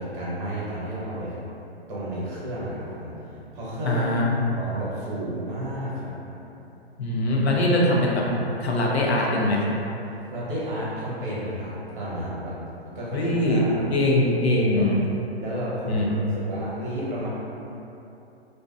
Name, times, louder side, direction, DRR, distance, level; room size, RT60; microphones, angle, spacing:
voice 1, 0.0-1.4 1.9-4.1 4.5-6.1 10.3-12.6 12.9-13.9 14.4-14.9 15.4-17.3, equal, 50° right, -8 dB, 0.9 m, -32 dB
voice 2, 3.8-4.2 7.0-8.3 8.6-9.7 13.1-13.6 13.9-15.0 15.9-16.2, left 1 dB, 75° left, -3 dB, 0.6 m, -22 dB
2.6 x 2.2 x 2.3 m, 2.9 s
figure-of-eight pair, 115°, 32 cm